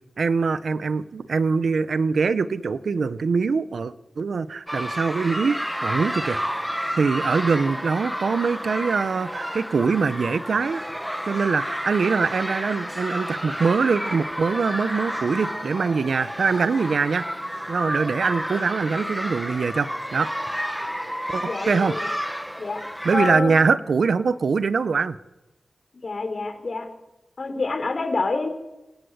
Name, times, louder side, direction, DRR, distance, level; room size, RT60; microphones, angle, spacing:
voice 1, 0.2-6.4 7.0-10.8 11.3-17.2 17.7-20.3 21.3-21.9 23.0-25.1, right 5 dB, 80° right, 14 dB, 1.2 m, -23 dB
sound 1, 4.7-23.3, equal, ahead, 1.7 m, -31 dB
voice 2, 21.4-22.1 22.6-22.8 23.1-23.5 25.9-26.9 27.4-28.5, left 3 dB, 55° left, 6 dB, 5.5 m, -27 dB
27.0 x 25.0 x 8.3 m, 1.0 s
cardioid pair, 65°, 0 cm